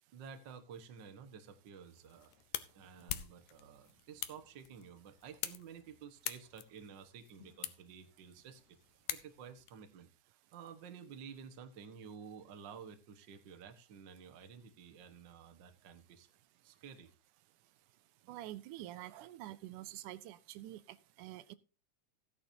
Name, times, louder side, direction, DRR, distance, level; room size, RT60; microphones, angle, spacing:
voice 1, 0.1-2.3 2.7-8.6 9.1-10.1 10.5-16.3 16.6-17.1, right 7 dB, 50° right, 7 dB, 1.5 m, -52 dB
sound 1, 1.9-9.7, left 13 dB, 75° left, 2.1 m, -46 dB
voice 2, 18.3-21.6, right 14 dB, 85° right, 14 dB, 2.2 m, -47 dB
16.0 x 9.7 x 2.8 m, 0.31 s
omnidirectional pair, 3.5 m